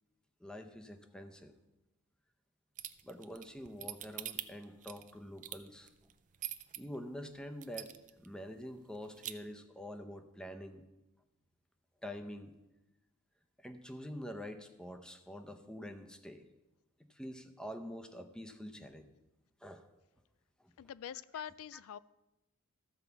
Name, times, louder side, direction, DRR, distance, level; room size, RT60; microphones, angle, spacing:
voice 1, 0.4-1.5 3.0-5.9 6.8-10.8 12.0-12.5 13.6-16.5 17.1-19.1 19.6-19.8, equal, 5° left, 6 dB, 0.7 m, -46 dB
sound 1, 2.8-6.8 7.2-7.3 7.6-8.3 8.6-8.7 8.9-9.3, right 12 dB, 35° right, 0.5 m, -43 dB
voice 2, 20.8-22.0, left 9 dB, 65° left, 20 dB, 0.3 m, -44 dB
14.0 x 4.8 x 6.9 m, 1.0 s
head